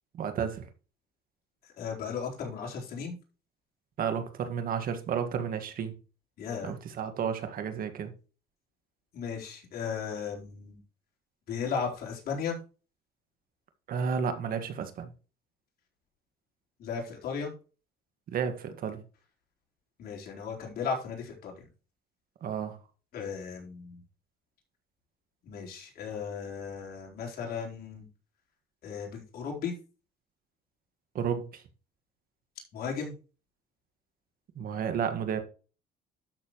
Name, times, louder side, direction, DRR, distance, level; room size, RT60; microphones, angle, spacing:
voice 1, 0.1-0.6 4.0-5.9 6.6-8.1 13.9-15.1 18.3-19.0 22.4-22.8 31.2-31.6 34.6-35.4, right 7 dB, 60° right, 1.8 m, -32 dB
voice 2, 1.8-3.2 6.4-6.8 9.1-10.8 11.5-12.6 16.8-17.5 20.0-21.5 23.1-24.0 25.4-28.0 28.8-29.7 32.7-33.1, left 6 dB, 65° left, 4.2 m, -35 dB
12.0 x 6.8 x 3.1 m
cardioid pair, 110°, 17 cm